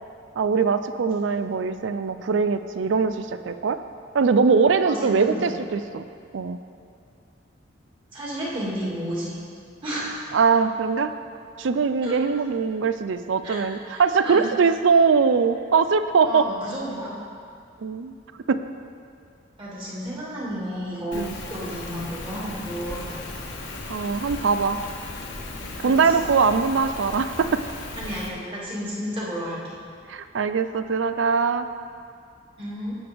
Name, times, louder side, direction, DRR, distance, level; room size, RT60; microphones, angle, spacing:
voice 1, 0.4-3.8 4.1-6.0 6.3-6.6 10.3-11.1 11.6-16.5 17.8-18.1 18.5-18.6 21.1-21.4 23.9-24.8 25.8-27.6 30.1-31.7, right 5 dB, 65° right, 11 dB, 0.4 m, -22 dB
voice 2, 4.8-5.5 8.1-9.4 9.8-10.2 12.0-12.2 13.4-13.6 13.9-14.5 16.3-17.1 19.6-21.2 21.5-23.4 25.8-26.3 28.0-29.8 32.6-33.0, equal, 25° right, -7 dB, 2.4 m, -32 dB
Rain, 21.1-28.3, left 2 dB, 65° left, 1.2 m, -36 dB
16.5 x 6.8 x 3.5 m, 2.4 s
head